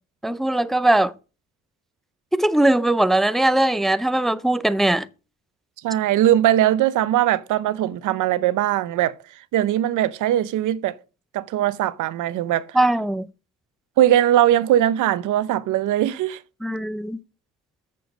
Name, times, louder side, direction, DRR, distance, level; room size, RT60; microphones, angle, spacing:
voice 1, 0.2-1.1 2.3-5.1 12.8-13.3 16.6-17.2, right 1 dB, ahead, 0.5 m, -20 dB
voice 2, 5.8-11.0 11.3-12.8 14.0-16.4, right 12 dB, 85° right, 0.7 m, -20 dB
7.9 x 6.9 x 5.1 m
cardioid pair, 90°, 30 cm